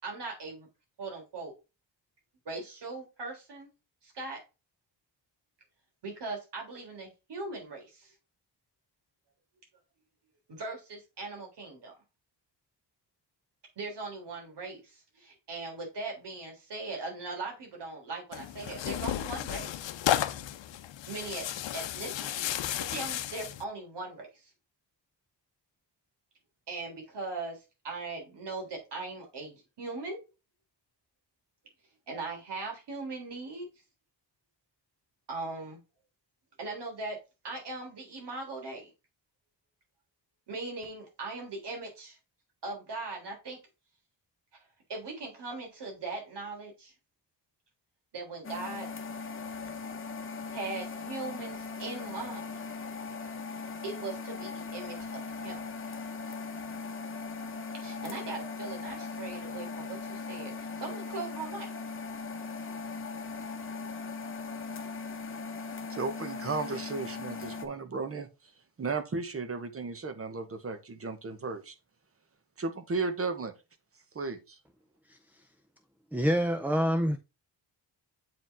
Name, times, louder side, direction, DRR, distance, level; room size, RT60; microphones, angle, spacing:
voice 1, 0.0-0.7 1.0-1.5 2.5-3.7 4.0-4.4 6.0-8.1 10.5-11.9 13.8-20.0 21.1-22.6 22.9-24.5 26.7-30.2 32.1-33.7 35.3-35.8 36.6-37.2 37.4-38.9 40.5-42.2 42.6-43.6 44.5-44.6 44.9-46.9 48.1-48.9 50.5-52.6 53.8-55.6 57.7-61.7, right 3 dB, 65° right, 3.6 m, -39 dB
Tearing, 18.3-23.6, left 12 dB, 90° left, 0.7 m, -33 dB
sound 1, 48.4-67.7, left 4 dB, 30° left, 1.0 m, -39 dB
voice 2, 65.9-68.3 68.8-71.7 72.6-73.5 74.1-74.6, right 4 dB, 30° right, 1.0 m, -34 dB
voice 3, 76.1-77.2, equal, 5° right, 0.4 m, -26 dB
7.8 x 4.9 x 3.5 m
wide cardioid pair, 180°, 43 cm